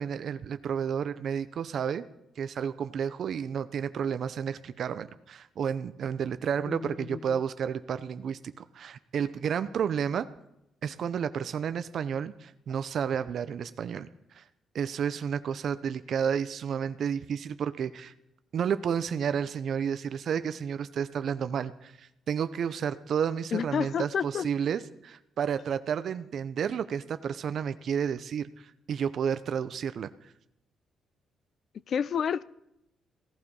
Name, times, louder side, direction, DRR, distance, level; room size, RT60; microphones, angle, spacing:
voice 1, 0.0-2.0 2.4-10.3 10.8-14.1 14.3-14.4 14.7-18.1 18.5-30.1, right 7 dB, 60° right, 0.7 m, -31 dB
voice 2, 6.7-7.4 23.5-24.5 31.9-32.4, left 7 dB, 55° left, 0.5 m, -30 dB
16.5 x 11.5 x 5.5 m
cardioid pair, 90°, 0 cm